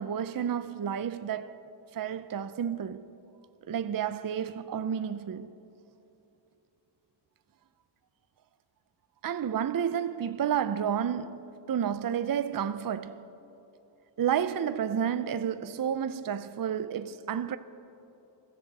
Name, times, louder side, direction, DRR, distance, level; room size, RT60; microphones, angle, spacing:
voice 1, 0.0-1.5 1.9-3.1 3.7-5.5 9.2-11.4 11.7-13.3 14.2-17.6, right 8 dB, 50° right, 0.5 m, -30 dB
21.5 x 15.0 x 4.1 m
wide cardioid pair, 75°, 45 cm